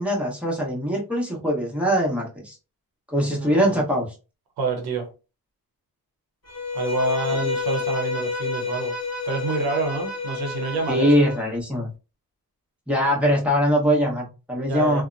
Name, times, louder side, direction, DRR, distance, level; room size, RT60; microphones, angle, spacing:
voice 1, 0.0-2.6 3.1-4.1 7.3-7.4 10.9-11.9 12.9-15.0, equal, 5° right, 0.9 m, -22 dB
voice 2, 3.3-3.8 4.6-5.1 6.7-8.9 9.3-11.1 14.7-15.0, right 3 dB, 80° right, 0.8 m, -27 dB
Bowed string instrument, 6.5-11.5, left 4 dB, 40° left, 1.2 m, -29 dB
2.7 x 2.1 x 2.5 m
cardioid pair, 85°, 38 cm